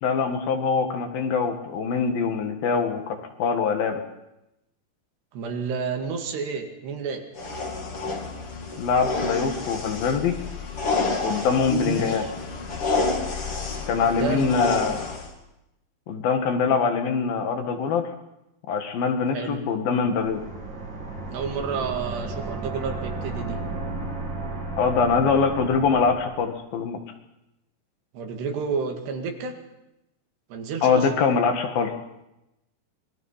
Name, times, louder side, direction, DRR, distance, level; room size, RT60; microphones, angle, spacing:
voice 1, 0.0-4.0 8.8-10.4 11.2-12.3 13.9-15.0 16.1-18.1 18.7-20.4 24.8-27.0 30.8-31.9, left 5 dB, 65° left, 5 dB, 3.3 m, -23 dB
voice 2, 5.3-7.3 11.8-12.3 13.9-14.5 19.3-19.6 21.3-23.6 28.1-29.6 30.5-31.1, right 5 dB, 80° right, 4 dB, 4.2 m, -31 dB
sound 1, 7.4-15.3, left 3 dB, 40° left, 2.9 m, -29 dB
sound 2, 20.0-26.5, right 3 dB, 30° right, 2.9 m, -34 dB
25.5 x 21.5 x 5.7 m, 0.90 s
omnidirectional pair, 4.7 m